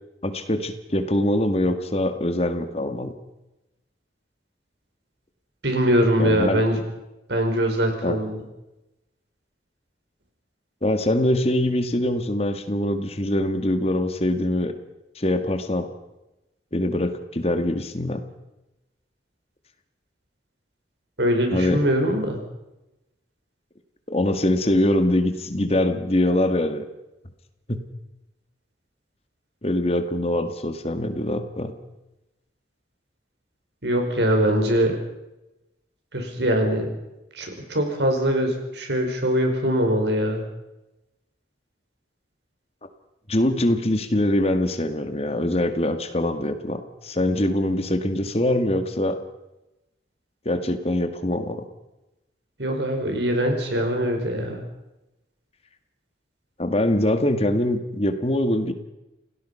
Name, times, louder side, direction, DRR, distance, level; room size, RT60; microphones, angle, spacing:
voice 1, 0.2-3.1 6.2-6.6 8.0-8.2 10.8-14.7 15.2-15.9 16.7-18.2 21.5-21.8 24.1-26.8 27.7-27.8 29.6-31.7 43.3-49.2 50.5-51.7 56.6-58.7, left 1 dB, 35° left, 9 dB, 1.8 m, -23 dB
voice 2, 5.6-6.8 7.3-8.4 21.2-22.4 33.8-35.0 36.1-36.9 37.4-40.4 52.6-54.6, equal, 80° right, 4 dB, 5.3 m, -22 dB
28.0 x 18.0 x 5.6 m, 0.96 s
head